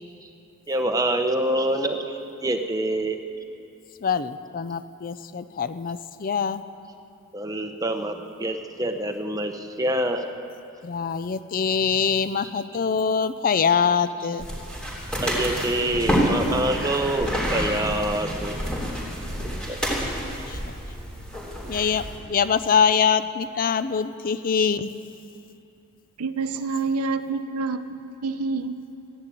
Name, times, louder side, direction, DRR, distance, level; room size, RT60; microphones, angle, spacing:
voice 1, 0.7-3.2 7.3-10.2 15.2-18.6 19.7-19.8, right 1 dB, 15° right, 5 dB, 0.9 m, -26 dB
voice 2, 4.0-6.6 10.8-14.5 20.5-20.6 21.7-24.9, left 6 dB, 40° left, 13 dB, 0.4 m, -24 dB
sound 1, 14.4-22.2, equal, 5° left, 3.3 m, -28 dB
voice 3, 26.2-28.0 28.2-28.7, right 4 dB, 85° right, 10 dB, 0.7 m, -27 dB
14.5 x 10.5 x 9.0 m, 2.6 s
head